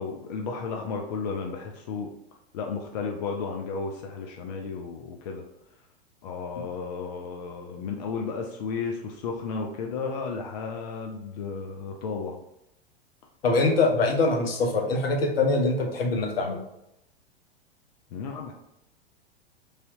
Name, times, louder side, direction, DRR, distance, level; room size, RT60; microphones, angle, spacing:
voice 1, 0.0-2.1 2.5-5.4 6.2-12.4 18.1-18.5, left 5 dB, 45° left, 2 dB, 0.4 m, -33 dB
voice 2, 13.4-16.6, left 3 dB, 65° left, 2 dB, 0.7 m, -23 dB
3.2 x 2.7 x 2.6 m, 0.83 s
figure-of-eight pair, 95°, 32 cm